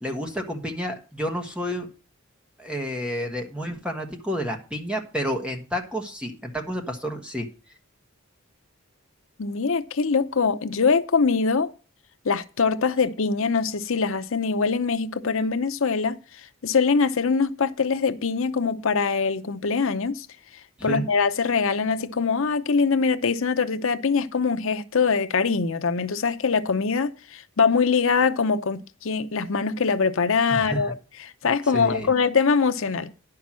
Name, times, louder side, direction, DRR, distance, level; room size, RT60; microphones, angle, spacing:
voice 1, 0.0-1.9 2.6-7.5 20.8-21.0 30.5-30.9 31.7-32.1, equal, 5° right, 1.3 m, -30 dB
voice 2, 9.4-11.7 12.2-16.2 16.6-20.3 20.8-30.9 31.4-33.1, left 5 dB, 65° left, 0.7 m, -23 dB
10.5 x 5.8 x 6.1 m
head